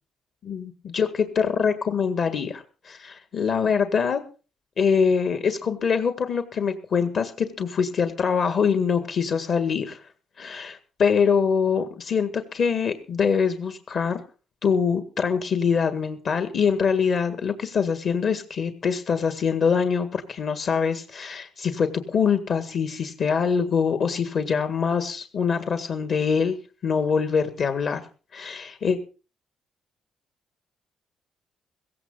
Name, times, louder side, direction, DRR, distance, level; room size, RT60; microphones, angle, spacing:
voice 1, 0.4-4.2 4.8-10.0 10.4-14.2 14.6-26.6 26.8-28.0 28.3-29.0, left 6 dB, 55° left, 9 dB, 1.8 m, -24 dB
16.5 x 15.5 x 3.9 m, 0.36 s
cardioid pair, 90°, 0 cm